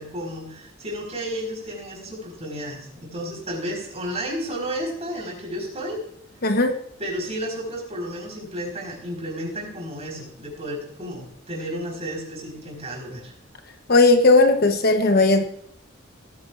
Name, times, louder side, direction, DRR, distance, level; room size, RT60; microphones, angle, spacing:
voice 1, 0.0-6.0 7.0-13.3, equal, 35° right, 0 dB, 4.3 m, -32 dB
voice 2, 6.4-6.7 13.9-15.4, left 3 dB, 50° left, 6 dB, 1.0 m, -16 dB
17.5 x 9.4 x 2.5 m, 0.72 s
head